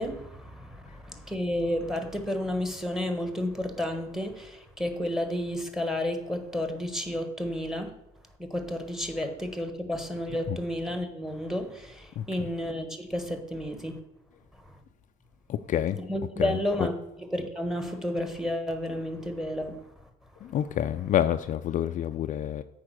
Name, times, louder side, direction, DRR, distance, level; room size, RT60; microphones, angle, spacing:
voice 1, 0.0-7.9 8.4-14.0 14.6-14.7 16.1-16.9 17.2-19.8, left 1 dB, ahead, 7 dB, 1.2 m, -31 dB
voice 2, 15.5-16.0 16.4-16.5 20.5-22.6, left 11 dB, 50° left, 9 dB, 0.4 m, -27 dB
8.6 x 4.5 x 6.2 m, 0.84 s
cardioid pair, 110°, 17 cm